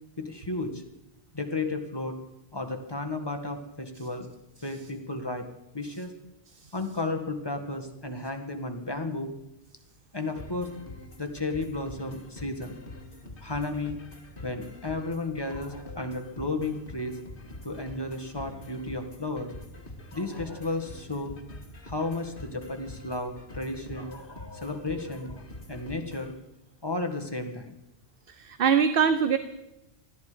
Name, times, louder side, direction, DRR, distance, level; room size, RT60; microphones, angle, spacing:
voice 1, 0.2-0.8 1.3-2.2 2.5-4.3 4.6-5.5 5.7-6.1 6.7-9.3 10.1-10.7 11.2-12.8 13.4-14.0 14.4-17.2 17.6-19.5 20.1-21.3 21.8-25.4 25.7-26.3 26.8-27.7, left 2 dB, 20° left, 4 dB, 1.7 m, -33 dB
sound 1, 10.4-26.3, left 2 dB, 55° left, 2.0 m, -45 dB
voice 2, 28.3-29.4, right 7 dB, 60° right, 11 dB, 0.9 m, -23 dB
20.5 x 14.0 x 5.1 m, 0.91 s
omnidirectional pair, 1.1 m